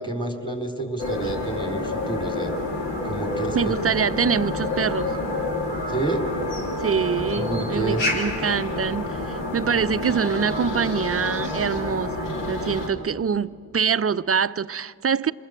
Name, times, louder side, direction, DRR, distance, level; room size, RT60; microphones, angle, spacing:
voice 1, 0.0-2.5 3.0-3.9 5.9-6.3 7.3-8.0, right 2 dB, 10° left, 4.2 m, -29 dB
sound 1, 1.0-12.9, left 2 dB, 80° left, 3.1 m, -28 dB
voice 2, 3.5-5.2 6.8-15.3, right 6 dB, 30° right, 0.5 m, -25 dB
26.5 x 20.5 x 7.9 m
cardioid pair, 50°, 44 cm